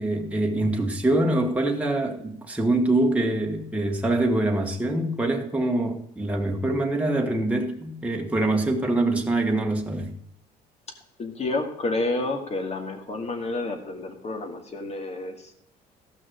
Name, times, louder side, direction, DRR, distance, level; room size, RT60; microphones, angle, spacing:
voice 1, 0.0-10.1, right 2 dB, 10° right, 1.5 m, -24 dB
voice 2, 11.2-15.5, left 2 dB, 40° left, 2.4 m, -30 dB
14.0 x 6.1 x 6.4 m
cardioid pair, 110°, 17 cm